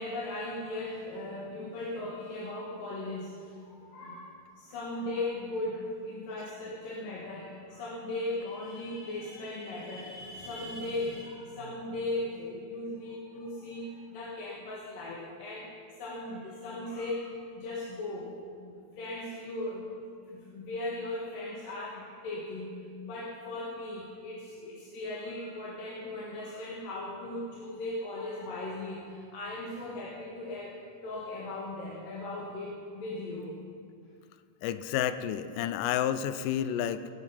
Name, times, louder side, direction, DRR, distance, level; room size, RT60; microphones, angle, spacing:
voice 1, 0.0-15.7 16.0-18.3 18.6-19.9 20.3-33.6, left 2 dB, 65° left, -5 dB, 3.3 m, -38 dB
voice 2, 34.6-37.1, left 10 dB, 85° left, 11 dB, 1.9 m, -30 dB
18.5 x 9.6 x 5.6 m, 2.2 s
omnidirectional pair, 4.4 m